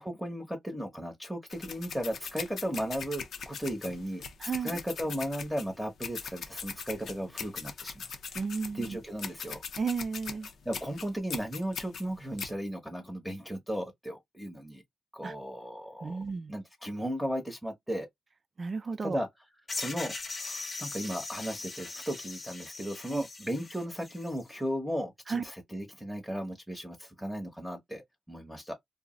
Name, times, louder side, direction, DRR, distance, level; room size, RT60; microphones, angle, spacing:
voice 1, 0.0-4.2 4.6-8.1 8.7-9.6 10.6-14.8 15.1-16.2 16.5-18.1 19.0-19.3 19.7-28.7, equal, ahead, 0.8 m, -36 dB
sound 1, 1.5-12.5, left 6 dB, 75° left, 0.5 m, -41 dB
voice 2, 4.4-4.7 8.3-9.0 9.8-10.5 15.2-15.3 16.0-16.5 18.6-19.2 23.1-23.2 25.3-25.4, right 5 dB, 45° right, 0.4 m, -33 dB
sound 2, 19.7-24.4, left 3 dB, 40° left, 0.8 m, -40 dB
2.4 x 2.0 x 3.6 m
cardioid pair, 70°, 0 cm